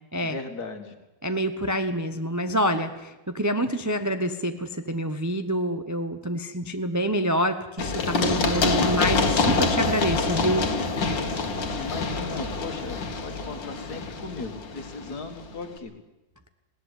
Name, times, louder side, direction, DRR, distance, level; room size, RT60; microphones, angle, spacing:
voice 1, 0.2-0.9 11.7-15.9, left 3 dB, 55° left, 7 dB, 2.3 m, -37 dB
voice 2, 1.2-10.7, equal, 20° right, 8 dB, 0.5 m, -27 dB
Run, 7.8-15.4, left 3 dB, 85° left, 2.4 m, -26 dB
20.0 x 17.0 x 8.2 m, 0.99 s
omnidirectional pair, 2.0 m